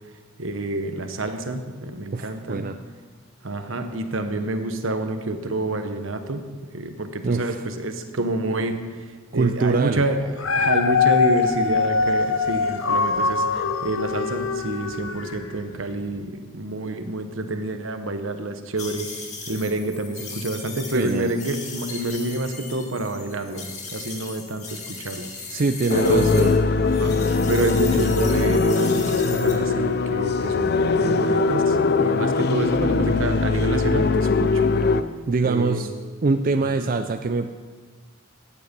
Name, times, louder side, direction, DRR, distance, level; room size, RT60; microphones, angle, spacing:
voice 1, 0.4-2.6 3.4-6.5 6.7-19.1 19.5-25.3 25.9-26.4 27.0-34.7 35.4-35.9 36.8-36.9, right 2 dB, 75° right, 7 dB, 1.2 m, -28 dB
voice 2, 2.1-2.8 7.2-7.6 9.3-10.0 20.9-21.3 25.5-26.6 35.3-35.9 36.2-37.5, right 3 dB, 40° right, 7 dB, 0.4 m, -23 dB
Dog, 10.2-15.5 16.1-16.2, left 5 dB, 80° left, 0.9 m, -23 dB
sound 1, 18.8-26.6 26.9-29.5, left 4 dB, 35° left, 2.1 m, -38 dB
sound 2, 25.9-35.0, left 4 dB, 50° left, 0.5 m, -21 dB
15.0 x 9.4 x 5.3 m, 1.5 s
head